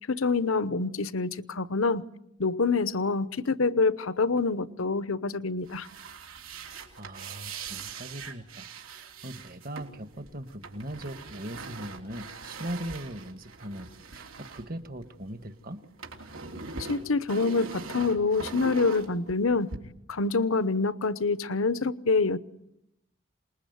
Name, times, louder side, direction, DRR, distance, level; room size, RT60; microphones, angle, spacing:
voice 1, 0.1-2.0 2.4-5.9 16.9-19.7 20.1-22.4, left 4 dB, 80° left, 0.9 m, -26 dB
sound 1, 5.6-15.4 15.7-19.8, right 4 dB, 80° right, 3.5 m, -42 dB
voice 2, 7.0-15.8, right 1 dB, 45° right, 1.4 m, -40 dB
27.0 x 21.0 x 9.3 m
head